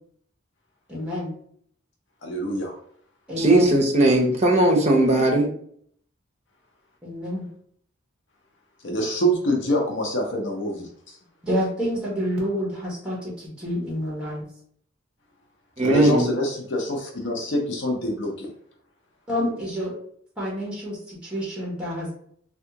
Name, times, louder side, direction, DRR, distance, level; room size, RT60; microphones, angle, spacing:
voice 1, 0.9-1.4 3.3-3.7 7.0-7.5 11.4-14.4 19.3-20.0 20.4-22.2, equal, 5° right, -4 dB, 1.0 m, -28 dB
voice 2, 2.2-2.8 8.8-11.2 15.8-18.5, equal, 65° left, 1 dB, 0.6 m, -26 dB
voice 3, 3.4-5.5 15.8-16.3, right 1 dB, 35° right, 0 dB, 0.6 m, -18 dB
3.5 x 2.3 x 2.8 m, 0.64 s
head